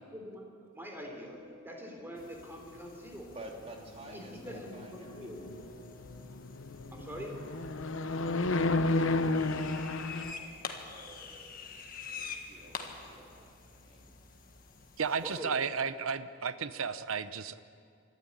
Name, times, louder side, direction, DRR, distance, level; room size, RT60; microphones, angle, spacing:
voice 1, 0.1-1.4 1.6-3.3 4.1-5.4 6.9-7.4 15.2-15.6, equal, 10° right, 1 dB, 3.5 m, -44 dB
sound 1, 0.8-13.0 13.2-13.3, left 3 dB, 50° right, 8.0 m, -58 dB
sound 2, 2.2-15.4, left 5 dB, 40° left, 1.6 m, -48 dB
voice 2, 3.3-5.3 8.2-9.4 9.6-10.5 10.8-11.7 12.1-14.1, right 1 dB, 30° right, 0 dB, 3.0 m, -51 dB
sound 3, 4.0-10.3, left 2 dB, 65° left, 0.9 m, -33 dB
voice 3, 15.0-17.6, right 6 dB, 80° right, 13 dB, 0.8 m, -33 dB
24.5 x 12.5 x 9.8 m, 2.3 s
head